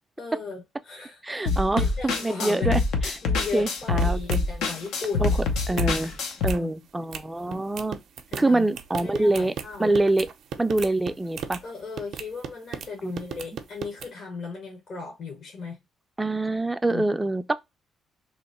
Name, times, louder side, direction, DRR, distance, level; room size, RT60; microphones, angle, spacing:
voice 1, 0.2-2.8 3.2-5.5 6.4-6.7 8.3-8.7 9.0-9.9 11.6-15.8 16.9-17.1, left 4 dB, 60° left, 1.1 m, -36 dB
voice 2, 1.2-3.1 3.5-4.4 5.2-5.3 5.7-6.2 6.4-8.0 8.4-9.5 9.8-10.3 10.6-11.6 13.0-13.1 16.2-17.6, right 2 dB, 15° right, 0.4 m, -25 dB
sound 1, 1.5-6.5, left 3 dB, 85° left, 0.7 m, -25 dB
sound 2, 3.8-4.0 4.3-4.4 4.8-5.3 5.6-5.9 6.3-6.6 7.1-7.2 7.5-11.6 12.0-12.9 13.2-14.1, right 7 dB, 70° right, 0.5 m, -36 dB
3.0 x 2.1 x 4.1 m
cardioid pair, 90°, 0 cm